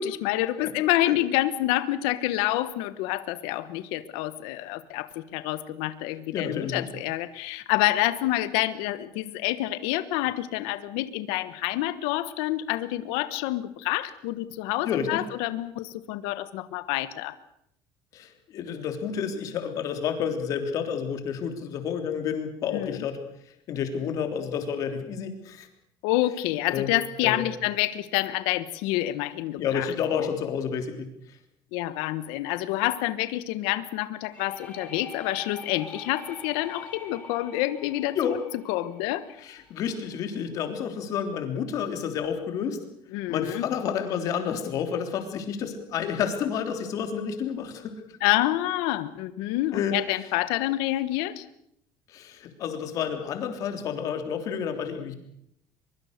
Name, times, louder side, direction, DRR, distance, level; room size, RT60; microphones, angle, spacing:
voice 1, 0.0-17.3 22.7-23.0 26.0-30.3 31.7-38.4 38.7-39.3 43.1-43.6 48.2-51.4, left 15 dB, 90° left, 13 dB, 1.3 m, -28 dB
voice 2, 6.3-6.9 14.8-15.2 18.1-23.2 23.7-25.7 26.7-26.9 27.2-27.4 29.6-31.1 38.1-38.3 39.4-42.8 43.3-48.0 49.7-50.0 52.1-55.1, left 7 dB, 45° left, 6 dB, 3.4 m, -30 dB
sound 1, 34.3-40.0, left 4 dB, 15° left, 4.8 m, -44 dB
23.0 x 23.0 x 6.7 m, 0.75 s
cardioid pair, 175°, 8 cm